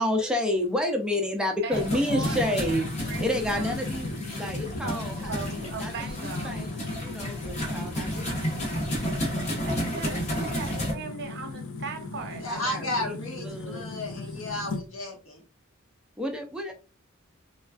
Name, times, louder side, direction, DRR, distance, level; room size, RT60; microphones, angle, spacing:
voice 1, 0.0-6.7 7.0-8.4 12.5-13.1 13.4-13.9 16.2-16.7, left 1 dB, 5° right, 0.4 m, -30 dB
voice 2, 1.6-3.7 4.8-6.7 9.6-12.5, right 4 dB, 55° right, 0.7 m, -39 dB
sound 1, 1.7-10.9, equal, 35° left, 0.9 m, -32 dB
sound 2, 2.0-14.9, left 3 dB, 65° left, 0.5 m, -37 dB
voice 3, 12.4-15.4, left 1 dB, 85° left, 1.2 m, -33 dB
3.2 x 2.3 x 2.3 m
head